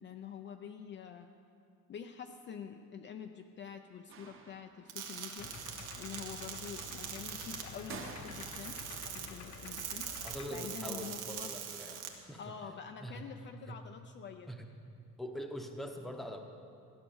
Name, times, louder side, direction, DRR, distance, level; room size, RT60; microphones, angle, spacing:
voice 1, 0.0-1.3 1.9-5.5 6.0-8.8 9.1-11.5 12.4-14.5, left 7 dB, 35° left, 5 dB, 0.5 m, -47 dB
sound 1, 4.1-5.1 7.9-8.9, right 4 dB, 40° right, 1.3 m, -48 dB
sound 2, 4.9-12.1, right 8 dB, 75° right, 1.7 m, -43 dB
Idling, 5.4-10.5, left 5 dB, 55° left, 0.9 m, -49 dB
voice 2, 10.2-12.4 13.0-13.2 13.7-13.8 14.5-14.7 15.2-16.4, equal, ahead, 3 dB, 0.9 m, -43 dB
15.0 x 10.5 x 7.1 m, 2.5 s
cardioid pair, 180°, 32 cm